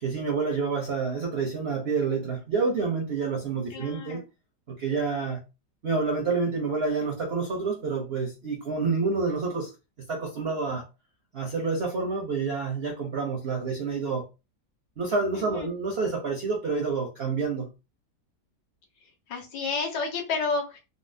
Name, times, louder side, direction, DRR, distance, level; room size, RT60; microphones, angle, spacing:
voice 1, 0.0-4.2 4.7-5.4 5.8-9.7 10.0-10.8 11.3-14.3 15.0-17.7, right 4 dB, 65° right, 0.6 m, -28 dB
voice 2, 3.7-4.2 15.3-15.7 19.3-20.8, left 4 dB, 75° left, 1.5 m, -30 dB
4.1 x 2.0 x 2.6 m
omnidirectional pair, 1.9 m